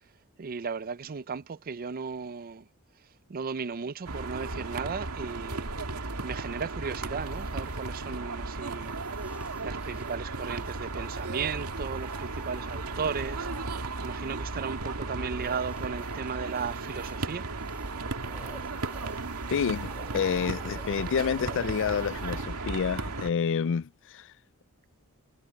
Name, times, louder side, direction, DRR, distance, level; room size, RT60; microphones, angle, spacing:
voice 1, 0.4-2.6 3.3-5.8 6.2-9.0 9.6-17.5, right 5 dB, 40° right, 0.5 m, -35 dB
sound 1, 4.1-23.3, right 3 dB, 80° right, 2.2 m, -35 dB
sound 2, 7.2-7.9 8.6-17.3 17.5-22.5, right 1 dB, 5° right, 2.7 m, -52 dB
voice 2, 19.5-24.3, left 7 dB, 60° left, 0.4 m, -29 dB
head